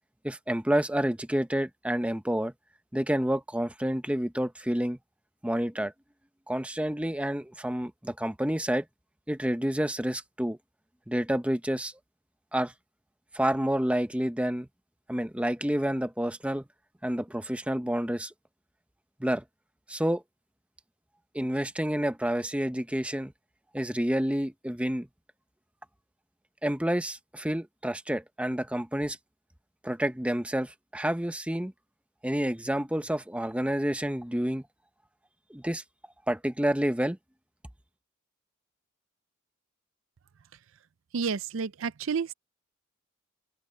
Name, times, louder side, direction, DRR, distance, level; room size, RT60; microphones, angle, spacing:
voice 1, 0.2-2.5 2.9-5.0 5.4-5.9 6.5-8.9 9.3-10.6 11.1-11.9 12.5-12.7 13.3-14.7 15.1-16.6 17.0-18.3 19.2-19.4 19.9-20.2 21.3-23.3 23.7-25.1 26.6-29.2 29.8-31.7 32.2-34.6 35.5-35.8 36.3-37.2, right 1 dB, 5° right, 0.8 m, -29 dB
voice 2, 41.1-42.3, right 5 dB, 65° right, 0.5 m, -30 dB
open air
head